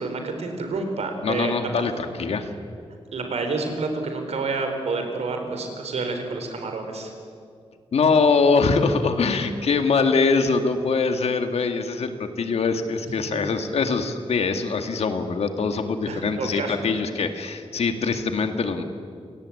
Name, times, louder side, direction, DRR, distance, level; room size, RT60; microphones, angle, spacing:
voice 1, 0.0-1.7 3.1-7.1 13.3-13.5 16.1-16.8, right 3 dB, 80° right, 5 dB, 4.2 m, -29 dB
voice 2, 1.2-2.5 7.9-18.8, left 4 dB, 75° left, 7 dB, 2.1 m, -23 dB
28.5 x 18.0 x 8.6 m, 2.3 s
wide cardioid pair, 155°, 11 cm